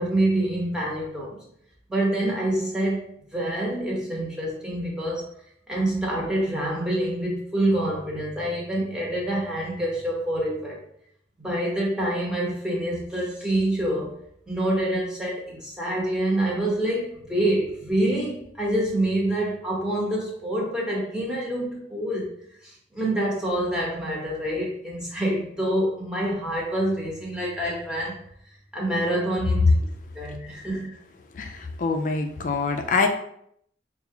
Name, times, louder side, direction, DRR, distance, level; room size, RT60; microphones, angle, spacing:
voice 1, 0.0-1.4 1.9-5.3 5.7-10.8 11.4-14.2 14.5-22.3 22.6-28.2 28.7-29.7 30.1-30.9, right 1 dB, 5° right, -4 dB, 1.0 m, -26 dB
voice 2, 31.3-33.1, left 4 dB, 45° left, 4 dB, 0.4 m, -25 dB
5.4 x 2.3 x 2.8 m, 0.69 s
head